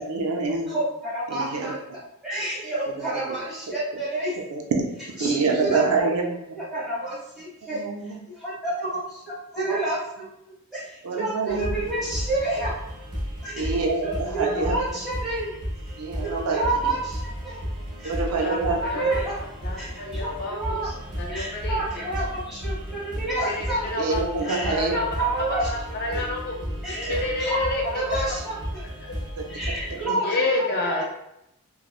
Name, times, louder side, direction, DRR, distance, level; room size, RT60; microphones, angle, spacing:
voice 1, 0.0-0.7 1.3-1.7 3.3-3.4 4.5-4.6 5.1-6.6 7.7-8.2 11.0-11.7 13.6-14.8 16.0-16.6 18.0-19.1 24.0-25.0 27.1-27.2 29.4-29.6 30.0-30.2, right 4 dB, 75° right, 2 dB, 0.4 m, -26 dB
voice 2, 0.7-4.4 5.2-6.1 6.6-7.8 8.2-10.3 10.7-12.7 13.4-13.8 14.0-15.5 15.8-17.6 18.0-18.1 18.4-19.4 19.7-20.9 21.3-23.9 24.4-26.3 26.8-28.8 29.5-30.4 30.8-31.0, right 2 dB, ahead, -10 dB, 1.2 m, -29 dB
sound 1, 11.5-30.1, equal, 40° right, 1.0 m, -34 dB
voice 3, 18.8-20.8 21.2-21.8 23.5-24.2 24.7-25.0 25.7-26.5 26.9-28.3 29.0-29.1 30.2-31.0, left 2 dB, 45° left, 0 dB, 0.4 m, -29 dB
2.9 x 2.1 x 2.3 m, 0.83 s
head